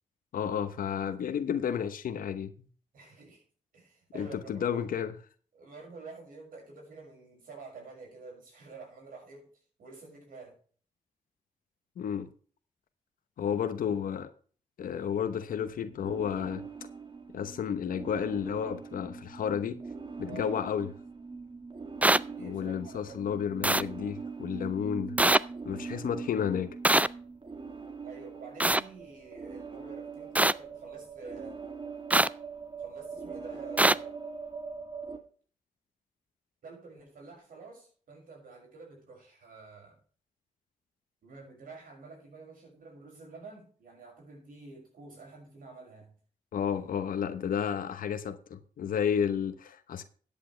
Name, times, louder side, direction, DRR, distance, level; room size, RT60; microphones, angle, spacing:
voice 1, 0.3-2.5 4.1-5.1 12.0-12.3 13.4-14.3 14.8-16.6 17.3-19.8 20.2-20.9 22.4-25.2 25.6-26.8 46.5-50.0, left 8 dB, 80° left, 1.0 m, -32 dB
voice 2, 2.9-3.4 3.7-4.8 5.5-9.4 9.8-10.6 13.4-13.6 20.2-20.6 22.2-23.4 28.0-31.6 32.8-34.2 36.6-40.0 41.2-46.1, right 4 dB, 80° right, 6.3 m, -49 dB
sound 1, 15.5-35.2, right 5 dB, 35° right, 2.1 m, -42 dB
sound 2, 22.0-22.2 23.6-23.8 25.2-25.4 26.8-27.1 28.6-28.8 30.4-30.5 32.1-32.3 33.8-33.9, right 1 dB, 10° right, 0.5 m, -22 dB
14.0 x 8.6 x 3.3 m
cardioid pair, 50°, 14 cm